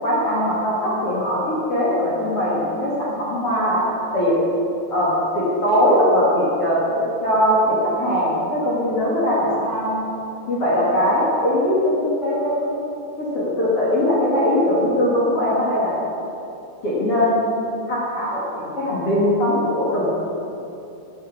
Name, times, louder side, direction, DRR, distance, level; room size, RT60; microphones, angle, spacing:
voice 1, 0.0-3.8 4.1-4.4 4.9-10.0 10.5-12.7 13.2-16.0 16.8-17.4 17.9-20.1, equal, 40° left, -7 dB, 2.2 m, -20 dB
12.0 x 8.8 x 6.6 m, 2.8 s
omnidirectional pair, 5.9 m